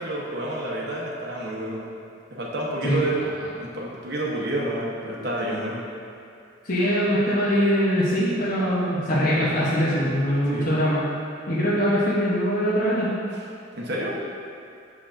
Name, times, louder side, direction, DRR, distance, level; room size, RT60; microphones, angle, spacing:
voice 1, 0.0-1.8 2.3-3.3 3.6-5.8 9.4-9.6 10.2-10.8 13.7-14.2, right 1 dB, 60° right, -4 dB, 1.0 m, -29 dB
voice 2, 6.6-11.0 11.5-13.1, equal, 45° left, -8 dB, 0.9 m, -22 dB
6.1 x 6.0 x 2.6 m, 2.4 s
head